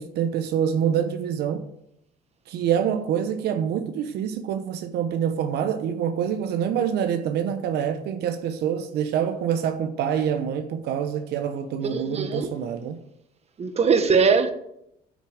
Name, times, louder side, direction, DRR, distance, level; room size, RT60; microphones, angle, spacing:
voice 1, 0.0-1.7 2.5-13.0, right 8 dB, 75° right, 0.9 m, -26 dB
voice 2, 11.8-12.5 13.6-14.5, right 5 dB, 40° right, 1.4 m, -21 dB
8.0 x 6.5 x 8.0 m
cardioid pair, 110°, 17 cm